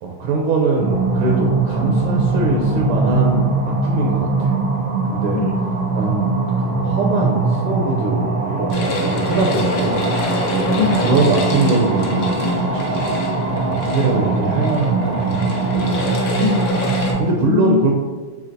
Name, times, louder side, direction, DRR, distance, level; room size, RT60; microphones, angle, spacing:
voice 1, 0.0-3.5 3.8-4.6 5.1-5.4 5.9-6.3 6.5-10.0 10.7-13.1 13.7-16.1 17.2-18.0, right 3 dB, 80° right, -1 dB, 1.4 m, -22 dB
sound 1, 0.8-17.2, right 3 dB, 60° right, 0.9 m, -21 dB
voice 2, 5.3-5.8 10.8-11.0 16.4-17.9, left 7 dB, 85° left, 1 dB, 1.5 m, -23 dB
sound 2, 8.7-17.1, left 2 dB, 65° left, 1.0 m, -27 dB
5.7 x 3.2 x 2.6 m, 1.4 s
omnidirectional pair, 2.4 m